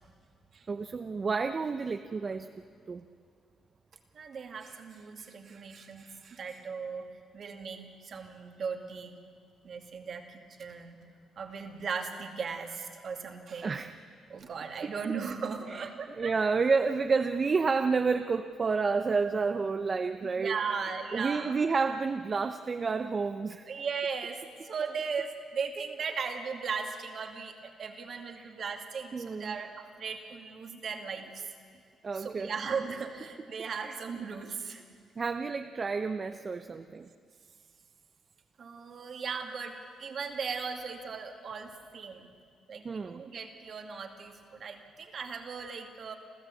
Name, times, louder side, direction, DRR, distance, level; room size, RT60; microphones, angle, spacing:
voice 1, 0.7-2.5 2.9-3.0 13.6-13.9 15.7-15.8 16.2-20.6 21.1-23.7 28.4-28.5 29.1-29.6 32.0-32.5 33.8-33.9 35.2-37.1 42.8-43.2, right 4 dB, 35° right, 8 dB, 0.7 m, -30 dB
voice 2, 4.1-7.1 7.3-9.2 9.6-11.0 11.4-13.8 14.3-16.3 20.4-21.5 23.7-31.5 32.1-34.8 38.6-42.3 42.7-46.2, right 5 dB, 50° right, 4 dB, 2.4 m, -37 dB
30.0 x 14.0 x 8.4 m, 2.2 s
cardioid pair, 90°, 0 cm